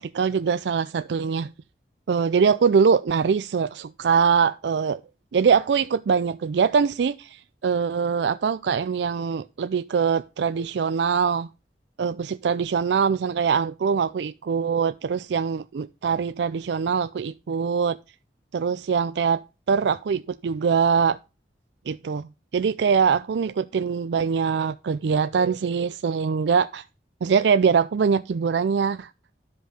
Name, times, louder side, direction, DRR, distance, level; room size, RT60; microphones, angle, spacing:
voice 1, 0.0-1.5 2.1-5.0 5.3-11.5 12.0-18.0 18.5-21.2 21.9-26.8 27.2-29.1, right 6 dB, 80° right, 0.4 m, -23 dB
12.0 x 5.4 x 5.0 m
head